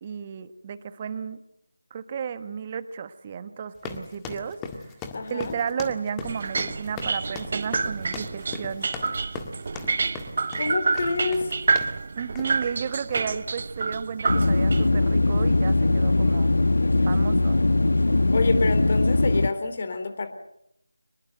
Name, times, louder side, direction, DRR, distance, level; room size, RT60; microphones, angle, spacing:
voice 1, 0.0-1.4 1.9-4.9 5.3-8.9 12.1-16.5 17.1-17.6, right 7 dB, 25° right, 13 dB, 1.3 m, -33 dB
sound 1, 3.8-12.0 12.4-12.7 13.1-13.3, left 5 dB, 10° left, 1.8 m, -38 dB
voice 2, 5.1-5.5 10.6-11.5 18.3-20.3, left 3 dB, 40° left, 9 dB, 3.7 m, -27 dB
sound 2, 6.2-14.9, right 4 dB, 40° right, 1.0 m, -28 dB
sound 3, 14.3-19.5, left 2 dB, 65° left, 1.3 m, -21 dB
24.5 x 21.5 x 8.0 m, 0.76 s
figure-of-eight pair, 165°, 0 cm